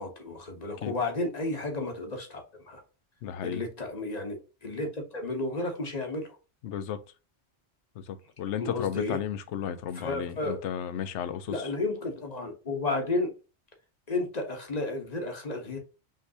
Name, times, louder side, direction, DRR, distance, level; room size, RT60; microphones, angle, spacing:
voice 1, 0.0-2.8 3.4-6.4 8.6-9.2 9.9-10.6 11.5-13.3 14.1-15.8, left 2 dB, 35° left, 1.1 m, -32 dB
voice 2, 3.2-3.6 6.6-7.0 8.0-11.6, left 9 dB, 75° left, 0.9 m, -34 dB
5.5 x 3.3 x 2.7 m
omnidirectional pair, 1.2 m